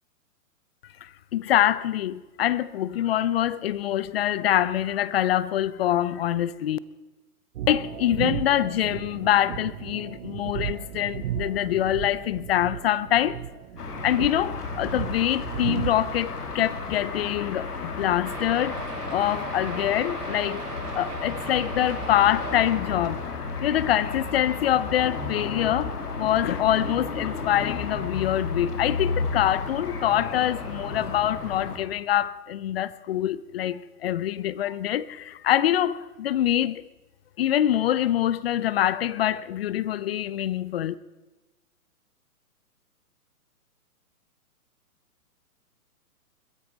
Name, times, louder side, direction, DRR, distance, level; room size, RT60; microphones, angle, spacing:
voice 1, 1.0-6.8 7.7-13.4 14.0-20.7 20.9-23.2 23.6-36.9 37.4-40.9, left 12 dB, 40° left, 0.6 m, -25 dB
sound 1, 7.6-16.2, right 11 dB, 50° right, 1.1 m, -35 dB
sound 2, 13.8-31.8, left 4 dB, 85° left, 2.8 m, -33 dB
sound 3, 18.2-23.7 24.4-24.5 24.7-24.8 25.2-25.3, right 3 dB, 90° right, 3.4 m, -39 dB
21.5 x 13.0 x 4.5 m
hypercardioid pair, 140°, 45 cm